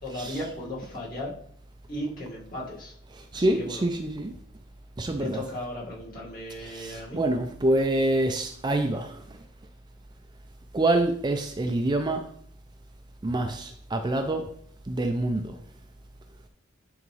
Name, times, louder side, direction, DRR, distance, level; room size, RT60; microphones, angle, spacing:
voice 1, 0.0-1.3 1.9-2.9 3.3-3.9 5.2-7.2, left 1 dB, 45° left, 2.1 m, -36 dB
voice 2, 3.1-4.3 5.0-5.4 6.6-9.2 10.7-12.2 13.2-14.4 14.9-15.6, right 1 dB, 20° right, 0.4 m, -26 dB
10.5 x 3.5 x 3.3 m
head